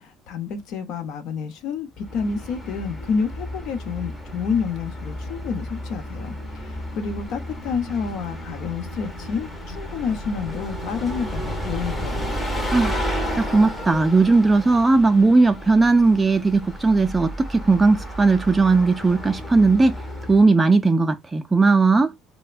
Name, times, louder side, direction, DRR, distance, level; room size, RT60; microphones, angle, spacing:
voice 1, 0.0-12.3, left 6 dB, 65° left, 0.7 m, -29 dB
Bus, 2.0-20.5, equal, 15° left, 0.8 m, -32 dB
voice 2, 13.4-19.9 20.3-22.1, right 3 dB, 15° right, 0.3 m, -17 dB
3.2 x 2.1 x 2.4 m
cardioid pair, 115°, 0 cm